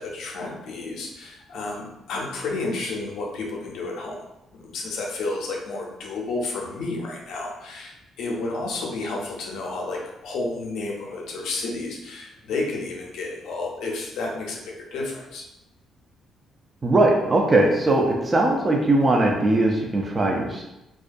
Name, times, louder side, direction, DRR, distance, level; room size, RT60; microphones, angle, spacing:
voice 1, 0.0-4.2 4.5-15.5, left 3 dB, 80° left, -1 dB, 0.5 m, -31 dB
voice 2, 16.8-20.6, right 2 dB, 30° right, 0 dB, 0.4 m, -20 dB
2.3 x 2.1 x 2.5 m, 0.92 s
cardioid pair, 90°, 0 cm